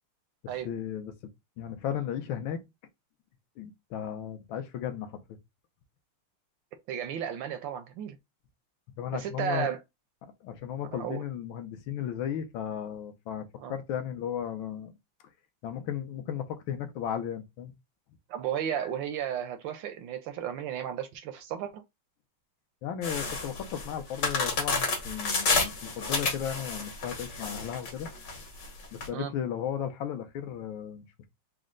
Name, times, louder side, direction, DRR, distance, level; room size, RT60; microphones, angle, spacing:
voice 1, 0.6-1.1 1.6-2.6 3.6-5.2 9.0-9.7 10.4-14.9 15.6-17.7 22.8-28.1 28.9-31.3, left 9 dB, 75° left, 1.4 m, -35 dB
voice 2, 6.9-8.2 9.1-9.8 10.9-11.2 13.6-13.7 18.3-21.8 29.1-29.3, right 9 dB, 75° right, 1.1 m, -34 dB
sound 1, 23.0-29.1, left 3 dB, 50° left, 1.7 m, -30 dB
4.3 x 2.0 x 3.7 m
omnidirectional pair, 2.4 m